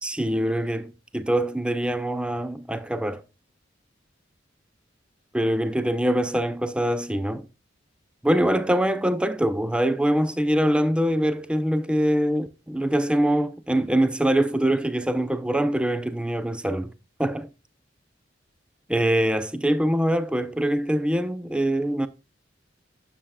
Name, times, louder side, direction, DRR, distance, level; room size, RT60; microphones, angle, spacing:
voice 1, 0.0-3.2 5.3-7.5 8.2-16.9 17.2-17.5 18.9-22.1, right 1 dB, 5° right, 0.5 m, -24 dB
9.2 x 7.3 x 2.2 m
head